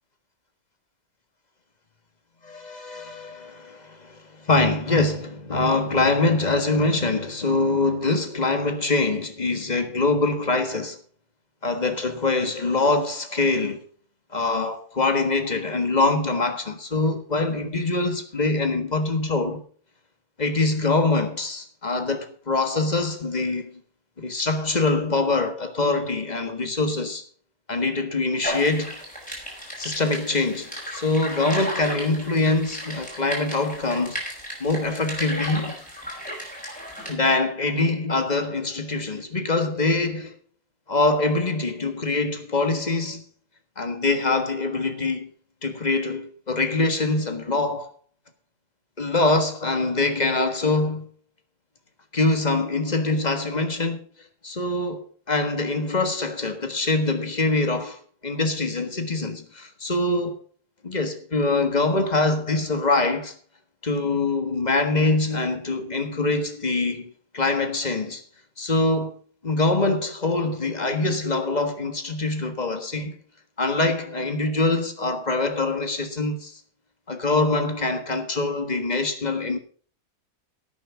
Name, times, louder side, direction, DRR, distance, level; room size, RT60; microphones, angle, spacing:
voice 1, 2.4-11.0 11.6-13.8 14.3-19.6 20.4-23.7 24.2-27.2 27.7-29.0 29.8-34.2 34.6-35.7 37.1-40.4 40.9-43.2 43.8-45.3 45.6-47.9 49.0-51.1 52.1-54.0 54.4-60.4 60.8-63.3 63.8-68.2 68.6-69.2 69.4-73.1 73.6-76.6 77.1-79.6, left 3 dB, 30° left, 1.5 m, -24 dB
sound 1, 28.4-37.1, equal, 5° left, 5.3 m, -34 dB
11.0 x 9.0 x 5.8 m
omnidirectional pair, 1.6 m